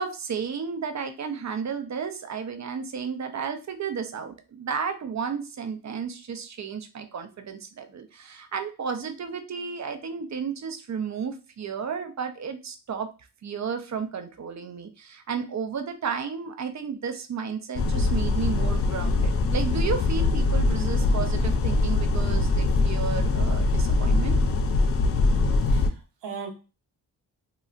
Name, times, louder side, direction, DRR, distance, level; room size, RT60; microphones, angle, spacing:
voice 1, 0.0-13.1 13.4-24.4, right 6 dB, 40° right, 7 dB, 0.5 m, -33 dB
sound 1, 17.8-25.9, left 3 dB, 35° left, 0.4 m, -23 dB
voice 2, 25.4-26.5, right 6 dB, 85° right, 2 dB, 0.8 m, -39 dB
3.9 x 2.0 x 2.4 m, 0.32 s
cardioid pair, 55°, 41 cm